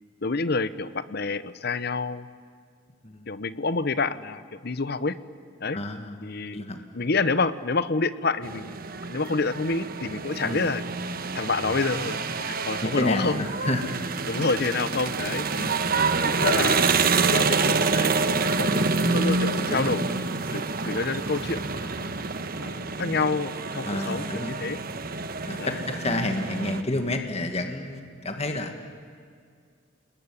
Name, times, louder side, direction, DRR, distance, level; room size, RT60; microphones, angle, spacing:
voice 1, 0.2-2.3 3.3-5.2 5.6-5.8 6.2-6.6 6.9-8.8 9.1-10.8 11.3-13.5 14.3-15.7 15.9-16.8 17.2-20.0 20.5-22.1 22.6-24.8 25.6-25.8, left 3 dB, 55° left, 15 dB, 0.9 m, -28 dB
voice 2, 5.7-6.2 6.5-6.8 10.4-10.7 12.8-14.0 15.6-15.9 18.6-19.2 19.7-20.0 23.8-24.8 25.5-28.7, left 1 dB, 30° left, 5 dB, 1.8 m, -30 dB
sound 1, 8.4-26.8, right 4 dB, 45° right, 1.2 m, -27 dB
28.5 x 21.0 x 9.9 m, 2.1 s
head